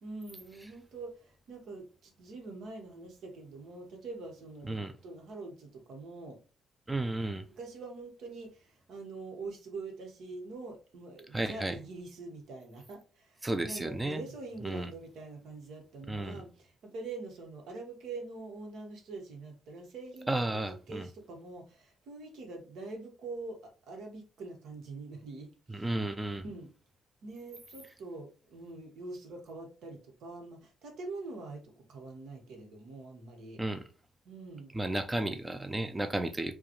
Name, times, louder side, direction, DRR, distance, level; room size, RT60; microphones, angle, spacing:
voice 1, 0.0-6.4 7.6-23.6 23.9-25.9 26.3-26.7 27.2-33.6 34.2-34.7, right 3 dB, 75° right, 1.2 m, -44 dB
voice 2, 6.9-7.4 11.3-11.7 13.4-14.2 14.6-14.9 16.1-16.4 20.3-21.1 25.7-26.4 33.6-33.8 34.7-36.5, right 1 dB, 15° right, 0.4 m, -33 dB
4.8 x 2.3 x 3.0 m
cardioid pair, 90°, 0 cm